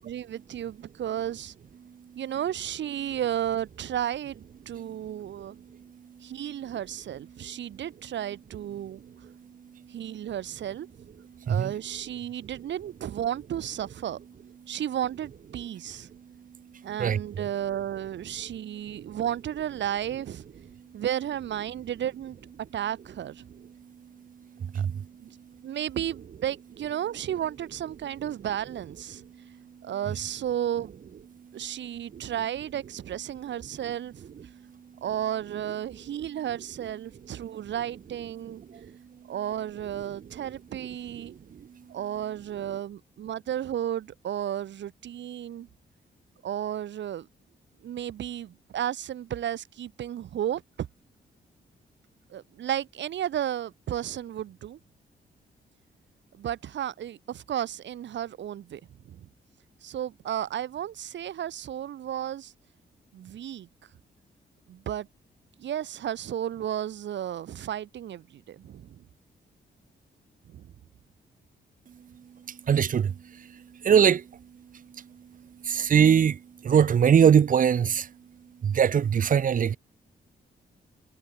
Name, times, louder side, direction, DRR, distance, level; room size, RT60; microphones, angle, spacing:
voice 1, 0.0-1.5 2.1-5.5 6.2-9.0 9.9-10.9 11.5-14.2 14.7-16.1 16.8-20.4 20.9-22.4 22.7-23.4 25.2-25.4 25.6-29.2 29.8-30.9 31.5-34.3 35.0-38.6 39.3-41.3 41.9-45.7 46.4-47.3 47.8-50.9 52.3-54.8 56.3-59.3 59.8-62.5 63.1-63.7 64.7-65.1 65.6-69.0 70.5-70.7, right 10 dB, 85° right, 3.6 m, -33 dB
voice 2, 11.4-11.7 16.7-17.2 18.9-19.1 24.6-25.1 29.5-29.6 32.1-32.2 38.7-38.9 41.2-41.7 72.5-74.3 74.7-75.1 75.6-78.1 78.6-79.8, right 8 dB, 50° right, 0.7 m, -23 dB
cardioid pair, 95°, 18 cm